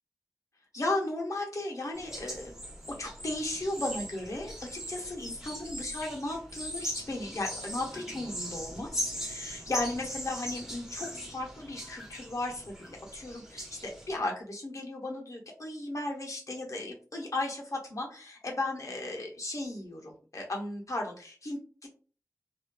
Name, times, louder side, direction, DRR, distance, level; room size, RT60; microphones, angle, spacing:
voice 1, 0.7-2.5 3.0-21.9, left 2 dB, 65° left, 0 dB, 0.8 m, -35 dB
sound 1, 1.9-14.2, equal, 10° right, 1.0 m, -40 dB
2.5 x 2.4 x 2.2 m, 0.39 s
wide cardioid pair, 50°, 6 cm